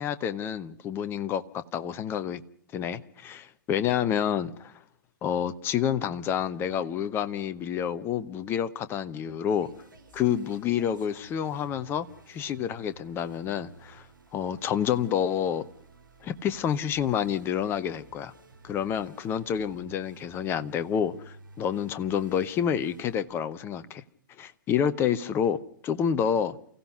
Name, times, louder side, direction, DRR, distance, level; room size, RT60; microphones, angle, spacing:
voice 1, 0.0-2.4 2.7-4.7 5.2-9.7 10.1-14.0 14.3-15.6 16.2-18.3 18.6-24.0 24.4-25.6 25.8-26.6, left 8 dB, 20° left, 13 dB, 1.0 m, -28 dB
sound 1, 9.5-23.2, right 3 dB, 70° right, 5.1 m, -53 dB
29.0 x 16.5 x 5.8 m, 0.62 s
figure-of-eight pair, 115°, 11 cm